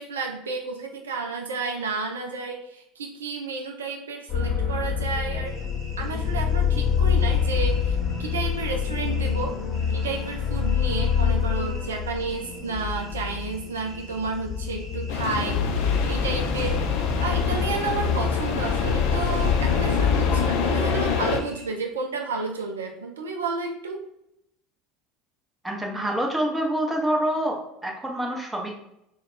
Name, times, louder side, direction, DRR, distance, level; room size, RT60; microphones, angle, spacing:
voice 1, 0.0-5.5 6.0-9.5 9.9-16.8 17.2-24.0, right 4 dB, 75° right, 2 dB, 0.4 m, -31 dB
sound 1, 4.3-21.2, left 7 dB, 35° left, 0.9 m, -26 dB
sound 2, 5.4-21.7, equal, 35° right, 1.2 m, -48 dB
sound 3, 15.1-21.4, left 5 dB, 60° left, 0.3 m, -27 dB
voice 2, 25.6-28.7, right 1 dB, 10° right, -1 dB, 0.7 m, -26 dB
2.3 x 2.2 x 3.6 m, 0.81 s
figure-of-eight pair, 70°, 0 cm